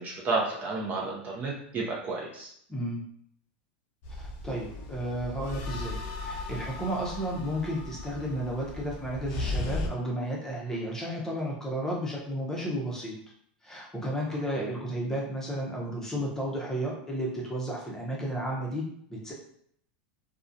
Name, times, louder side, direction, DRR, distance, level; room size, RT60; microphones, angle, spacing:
voice 1, 0.0-2.5 14.6-14.7, right 3 dB, 30° right, -2 dB, 0.5 m, -31 dB
voice 2, 2.7-3.0 4.2-13.1 13.6-19.3, equal, 10° left, -4 dB, 0.7 m, -33 dB
sound 1, 4.0-9.9, left 2 dB, 50° left, 0.4 m, -36 dB
2.3 x 2.1 x 2.6 m, 0.67 s
supercardioid pair, 115°, 5 cm